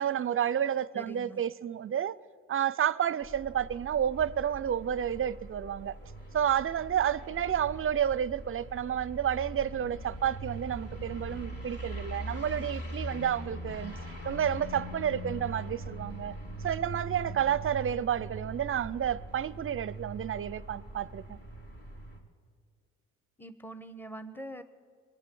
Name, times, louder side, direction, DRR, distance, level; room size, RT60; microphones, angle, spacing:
voice 1, 0.0-2.2 2.5-5.9 6.3-14.0 14.2-16.4 16.6-21.4, right 9 dB, 40° right, 0.5 m, -30 dB
voice 2, 0.9-1.4 23.4-24.6, right 1 dB, 5° left, 1.1 m, -43 dB
sound 1, 3.2-22.2, right 1 dB, 45° left, 3.6 m, -42 dB
23.0 x 8.7 x 7.0 m
supercardioid pair, 55°, 32 cm